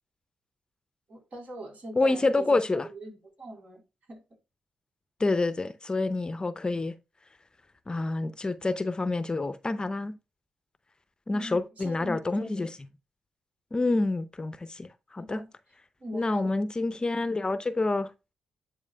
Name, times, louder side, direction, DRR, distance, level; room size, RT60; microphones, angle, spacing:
voice 1, 1.1-3.8 4.1-4.2 11.3-12.7 15.2-15.5 16.0-16.5, right 1 dB, 55° right, 3.9 m, -41 dB
voice 2, 2.0-2.9 5.2-6.9 7.9-10.1 11.3-12.7 13.7-15.4 16.1-18.1, left 2 dB, 30° left, 0.7 m, -27 dB
10.5 x 4.9 x 2.3 m
hypercardioid pair, 40°, 3 cm